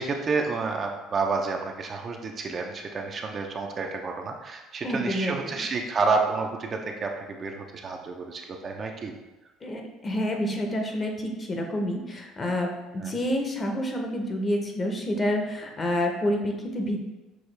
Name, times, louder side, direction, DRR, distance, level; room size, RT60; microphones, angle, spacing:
voice 1, 0.0-9.1 13.0-13.1, right 4 dB, 35° right, 2 dB, 0.5 m, -29 dB
voice 2, 4.8-5.5 9.6-17.1, left 1 dB, 25° left, 2 dB, 0.7 m, -28 dB
6.1 x 2.3 x 3.3 m, 1.1 s
cardioid pair, 115°, 0 cm